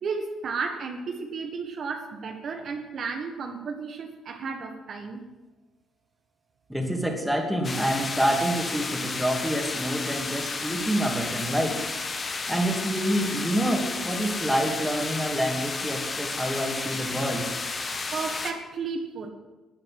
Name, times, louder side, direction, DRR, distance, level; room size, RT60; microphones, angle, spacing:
voice 1, 0.0-5.2 18.1-19.3, right 5 dB, 60° right, 4 dB, 1.6 m, -33 dB
voice 2, 6.7-11.8 12.5-17.4, equal, 5° right, 1 dB, 2.7 m, -27 dB
sound 1, 7.6-18.5, left 4 dB, 35° left, 1.6 m, -32 dB
13.0 x 8.8 x 7.8 m, 1.2 s
cardioid pair, 90°, 0 cm